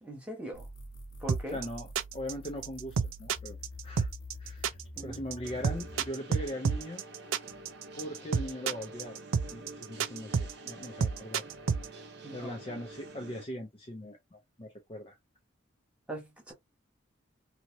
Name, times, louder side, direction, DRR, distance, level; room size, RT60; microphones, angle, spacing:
voice 1, 0.0-0.7 1.2-1.6 5.0-5.2 12.2-12.6 16.1-16.5, right 1 dB, 5° right, 1.1 m, -41 dB
sound 1, 0.5-6.1, left 1 dB, 85° left, 0.8 m, -46 dB
sound 2, 1.3-11.9, right 5 dB, 80° right, 0.4 m, -30 dB
voice 2, 1.5-3.6 3.8-4.1 4.4-7.0 7.9-9.2 9.5-11.5 12.3-15.2, left 1 dB, 30° left, 0.5 m, -40 dB
sound 3, 5.4-13.4, right 2 dB, 55° right, 0.7 m, -48 dB
2.8 x 2.7 x 2.7 m
head